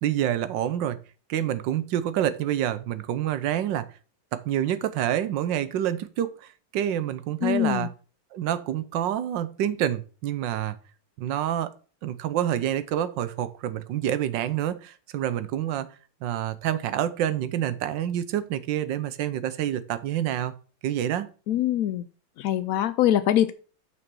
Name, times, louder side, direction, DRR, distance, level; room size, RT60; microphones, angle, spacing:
voice 1, 0.0-1.0 1.3-3.9 4.3-7.9 8.3-10.8 11.2-11.7 12.0-15.9 16.2-20.5 20.8-21.3, right 11 dB, 80° right, 14 dB, 1.4 m, -27 dB
voice 2, 7.4-7.9 21.5-22.1 22.4-23.5, left 12 dB, 80° left, 12 dB, 0.7 m, -23 dB
6.4 x 6.0 x 6.0 m, 0.38 s
omnidirectional pair, 2.0 m